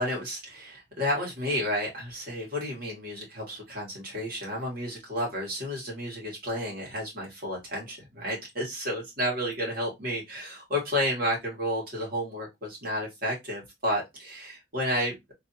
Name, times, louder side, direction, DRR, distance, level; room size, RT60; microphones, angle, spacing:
voice 1, 0.0-15.3, equal, 50° right, -2 dB, 1.8 m, -31 dB
3.2 x 2.7 x 2.6 m, 0.18 s
head